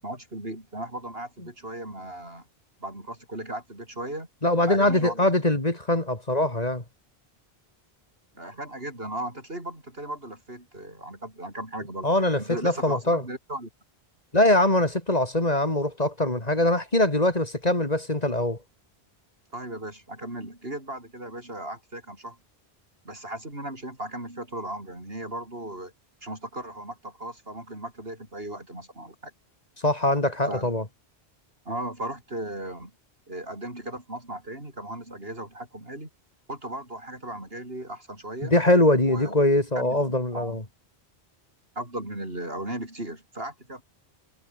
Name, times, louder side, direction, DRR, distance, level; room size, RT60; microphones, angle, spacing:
voice 1, 0.0-2.5 2.8-4.3 4.7-5.3 8.3-12.1 12.4-13.7 19.5-22.4 23.0-25.9 26.2-29.3 30.5-30.7 31.7-32.9 33.3-36.1 36.5-38.5 39.0-39.4 39.8-40.6 41.8-43.8, right 1 dB, 65° right, 7.4 m, -36 dB
voice 2, 4.4-6.8 12.0-13.2 14.3-18.6 29.8-30.8 38.4-40.6, left 1 dB, 40° left, 3.3 m, -22 dB
omnidirectional pair, 1.1 m